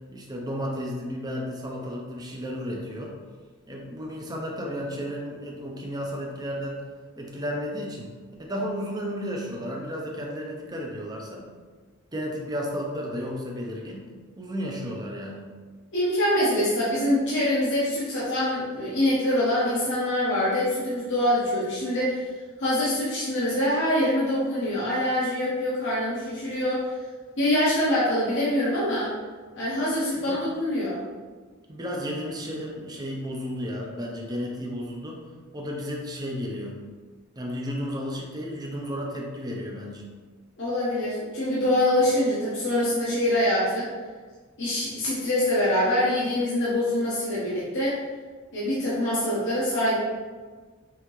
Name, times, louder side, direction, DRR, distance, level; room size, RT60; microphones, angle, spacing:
voice 1, 0.1-3.1 3.7-6.8 7.2-8.1 8.4-11.4 12.1-14.0 14.4-15.4 30.1-30.4 31.7-35.2 35.5-36.8 37.4-40.1, equal, 20° right, -1 dB, 0.7 m, -33 dB
voice 2, 15.9-22.2 22.6-26.9 27.4-29.1 29.5-31.0 40.6-43.9 44.6-48.0 48.5-50.0, left 1 dB, 55° left, -8 dB, 1.0 m, -24 dB
5.6 x 2.8 x 3.1 m, 1.4 s
head